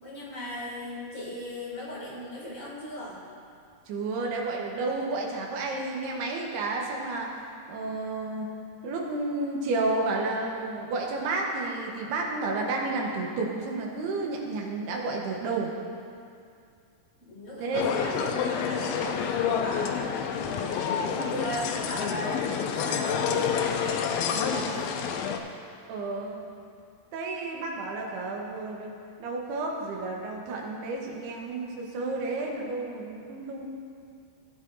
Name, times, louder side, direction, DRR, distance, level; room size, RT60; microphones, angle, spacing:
voice 1, 0.0-3.2 17.2-20.0 20.6-24.9, left 1 dB, 20° left, -8 dB, 2.5 m, -37 dB
voice 2, 3.9-7.3 7.7-8.5 8.8-15.7 17.6-17.9 25.9-26.4 27.1-28.9 29.2-33.7, right 3 dB, 85° right, 0 dB, 3.1 m, -31 dB
sound 1, 17.7-25.4, left 7 dB, 80° left, 2.1 m, -28 dB
15.5 x 9.4 x 2.7 m, 2.4 s
omnidirectional pair, 4.6 m